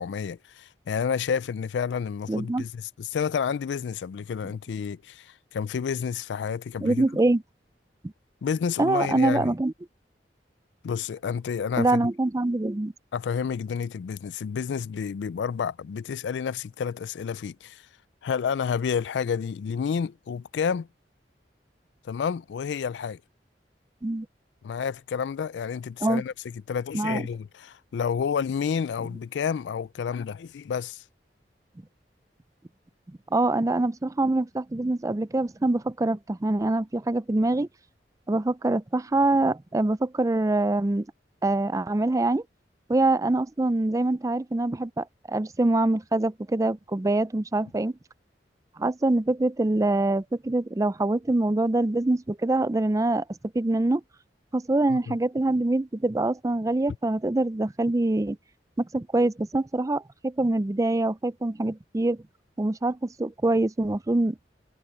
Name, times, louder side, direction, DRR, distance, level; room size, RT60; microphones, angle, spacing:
voice 1, 0.0-7.1 8.4-9.5 10.8-12.1 13.1-17.8 18.2-20.9 22.0-23.2 24.6-31.0 54.9-55.2, left 6 dB, 85° left, 0.4 m, -30 dB
voice 2, 2.3-2.6 6.8-7.4 8.8-9.7 11.8-12.9 24.0-24.3 26.0-26.2 26.9-27.2 33.3-37.7 38.3-41.1 41.4-42.4 42.9-47.9 48.8-53.2 53.5-54.0 54.5-58.4 58.8-62.2 62.6-64.4, right 2 dB, 20° right, 0.4 m, -24 dB
head